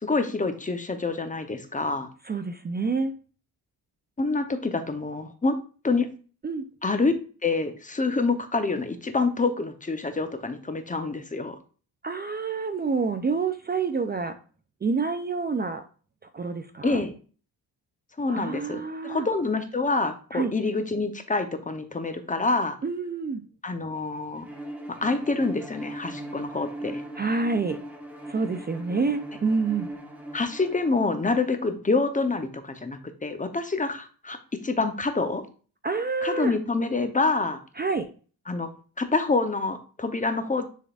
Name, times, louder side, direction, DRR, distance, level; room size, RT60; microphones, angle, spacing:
voice 1, 0.0-2.1 4.2-5.5 5.8-6.1 6.8-7.1 7.4-11.6 16.8-17.1 18.2-22.8 23.6-24.5 24.9-27.0 30.3-34.4 34.6-35.4 36.2-37.6 38.5-38.7 39.0-40.6, left 3 dB, 20° left, 8 dB, 0.8 m, -27 dB
voice 2, 2.2-3.1 6.4-6.6 12.0-14.4 14.8-15.8 16.3-17.0 18.3-19.3 20.3-20.5 22.8-23.4 27.2-27.8 28.3-29.9 35.8-36.6 37.8-38.1, right 4 dB, 25° right, 8 dB, 0.5 m, -27 dB
Bowed string instrument, 24.4-31.0, right 1 dB, 5° right, 1.4 m, -39 dB
10.0 x 3.8 x 2.5 m, 0.38 s
cardioid pair, 105°, 39 cm